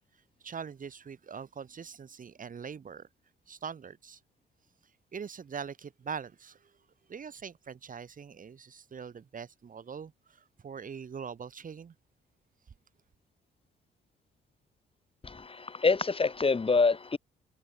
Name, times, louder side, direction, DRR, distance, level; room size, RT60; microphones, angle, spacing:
voice 1, 0.4-3.1 3.5-4.2 5.1-6.7 7.1-11.9, right 6 dB, 45° right, 2.3 m, -42 dB
voice 2, 15.2-17.2, left 4 dB, 30° left, 3.5 m, -26 dB
cardioid pair, 90°, 20 cm